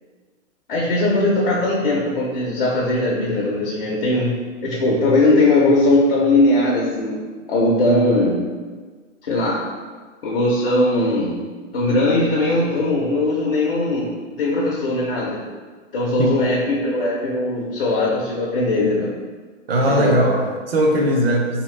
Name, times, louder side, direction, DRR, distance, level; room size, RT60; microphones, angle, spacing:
voice 1, 0.7-4.3 4.6-7.2 7.5-8.4 9.2-9.6 10.2-11.3 11.7-14.1 14.4-15.4 15.9-19.1 19.8-20.1, left 2 dB, 50° left, -5 dB, 0.6 m, -19 dB
voice 2, 19.7-21.6, right 1 dB, 50° right, 1 dB, 0.6 m, -19 dB
3.1 x 2.8 x 3.1 m, 1.4 s
hypercardioid pair, 175°, 37 cm